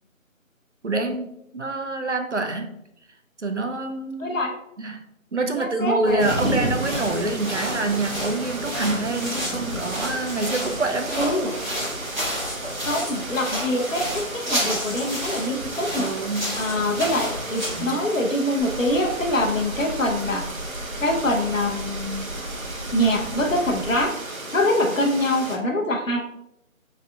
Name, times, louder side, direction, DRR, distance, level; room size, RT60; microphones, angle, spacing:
voice 1, 0.8-2.8 3.4-4.4 4.8-5.0 5.3-11.3 16.0-16.6 17.1-17.3 17.7-18.0, right 2 dB, 60° right, 5 dB, 0.5 m, -26 dB
voice 2, 4.2-4.6 5.5-6.6 11.1-11.5 12.9-16.1 16.6-20.4 21.0-22.3 22.9-24.1 24.5-26.2, left 1 dB, 65° left, 2 dB, 0.9 m, -24 dB
sound 1, 6.1-17.9, equal, 35° right, 1.5 m, -31 dB
sound 2, 6.2-25.6, right 1 dB, 75° right, 1.0 m, -33 dB
sound 3, 18.6-24.0, equal, 35° left, 1.1 m, -36 dB
4.7 x 3.5 x 2.3 m, 0.81 s
figure-of-eight pair, 180°, 41 cm